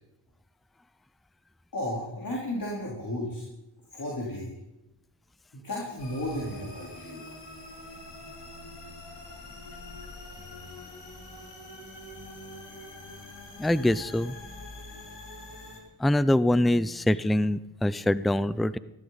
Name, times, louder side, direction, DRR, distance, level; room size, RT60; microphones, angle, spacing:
voice 1, 1.7-3.5 3.9-4.5 5.5-7.2, left 1 dB, 45° left, -4 dB, 3.8 m, -33 dB
sound 1, 6.0-15.8, left 2 dB, 65° left, 3.2 m, -44 dB
voice 2, 13.6-14.4 16.0-18.8, left 1 dB, ahead, 17 dB, 0.4 m, -24 dB
15.0 x 13.0 x 4.0 m, 0.95 s
cardioid pair, 45°, 45 cm